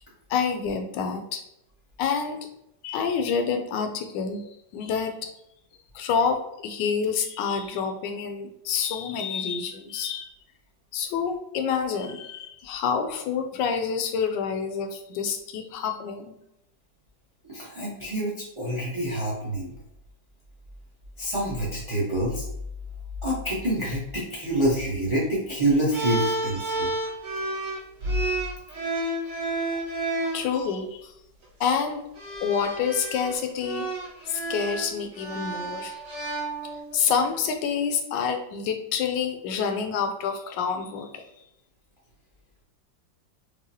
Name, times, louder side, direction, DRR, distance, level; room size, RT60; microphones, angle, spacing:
voice 1, 0.3-1.4 2.0-2.4 2.8-4.4 4.7-5.3 5.9-10.3 10.9-16.3 30.3-31.1 31.6-32.0 32.4-33.9 34.3-35.9 36.9-41.2, left 6 dB, 75° left, 6 dB, 1.2 m, -27 dB
voice 2, 17.5-19.7 21.2-22.5 23.2-26.9, right 1 dB, 45° right, -6 dB, 0.4 m, -27 dB
sound 1, 25.9-30.4 31.4-31.7 32.2-37.0, right 1 dB, 65° right, 1.8 m, -30 dB
4.8 x 2.1 x 2.7 m, 0.80 s
omnidirectional pair, 2.0 m